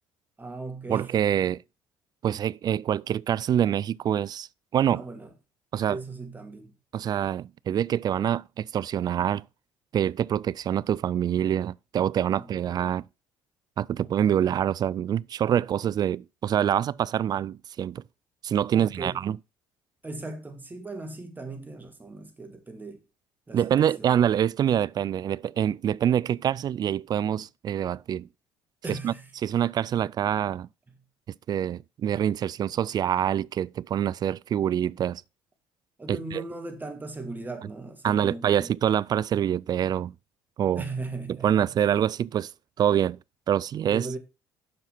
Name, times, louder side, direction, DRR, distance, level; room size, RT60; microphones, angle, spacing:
voice 1, 0.4-1.1 4.9-5.3 5.9-6.8 12.3-12.8 14.0-14.6 18.7-19.3 20.0-23.0 23.5-24.3 28.8-29.3 30.9-31.0 36.0-38.7 40.7-41.8 43.9-44.2, right 3 dB, 20° right, 2.3 m, -38 dB
voice 2, 0.9-1.6 2.2-4.5 4.7-5.0 5.7-6.0 6.9-9.4 9.9-13.1 13.8-18.0 18.4-19.4 23.5-28.3 28.9-29.1 29.4-30.7 31.5-35.2 36.1-36.2 38.0-40.1 40.6-40.8 41.4-42.5 42.8-43.2 43.5-44.1, right 9 dB, 45° right, 0.3 m, -25 dB
7.4 x 5.7 x 5.7 m
supercardioid pair, 80°, 10 cm